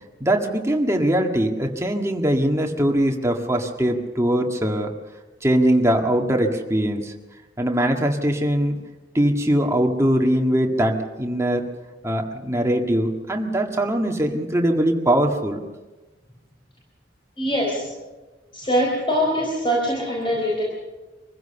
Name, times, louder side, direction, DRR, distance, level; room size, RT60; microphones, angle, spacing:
voice 1, 0.2-4.9 5.4-7.1 7.6-8.8 9.1-11.7 12.0-15.6, right 1 dB, 15° right, 2 dB, 1.8 m, -21 dB
voice 2, 17.4-17.9 18.5-20.6, equal, 30° left, -3 dB, 4.3 m, -23 dB
25.0 x 15.5 x 7.0 m, 1.2 s
head